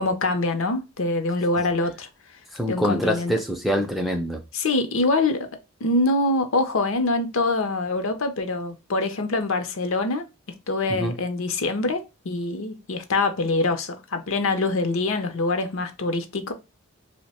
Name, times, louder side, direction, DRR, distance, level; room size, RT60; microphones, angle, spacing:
voice 1, 0.0-2.1 2.7-3.3 4.5-5.5 5.8-10.2 10.7-16.5, left 2 dB, 70° left, 0.6 m, -24 dB
voice 2, 2.5-4.4 10.9-11.1, equal, ahead, 0.3 m, -25 dB
2.7 x 2.1 x 4.1 m
head